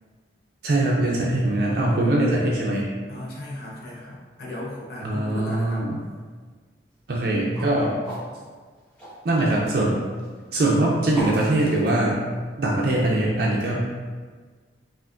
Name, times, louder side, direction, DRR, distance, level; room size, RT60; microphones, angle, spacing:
voice 1, 0.6-2.9 5.0-5.9 7.1-8.0 9.2-10.0 10.5-12.2 12.6-13.8, right 1 dB, 55° right, -3 dB, 0.4 m, -22 dB
voice 2, 1.6-2.2 3.1-5.9, left 1 dB, 55° left, -4 dB, 0.7 m, -36 dB
sound 1, 7.0-9.2 10.1-12.5, equal, 5° left, 1.0 m, -38 dB
5.8 x 2.5 x 2.5 m, 1.5 s
head